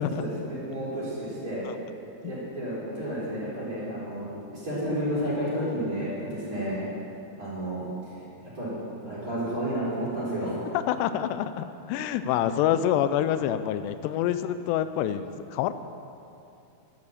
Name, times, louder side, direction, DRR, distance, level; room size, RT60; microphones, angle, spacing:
voice 1, 0.0-1.6 2.2-6.8 7.4-8.1 8.5-8.7 9.0-10.5 10.9-11.0, right 1 dB, 20° right, -8 dB, 4.5 m, -31 dB
voice 2, 10.7-15.7, left 10 dB, 85° left, 12 dB, 2.7 m, -27 dB
12.5 x 11.5 x 7.3 m, 2.7 s
omnidirectional pair, 4.8 m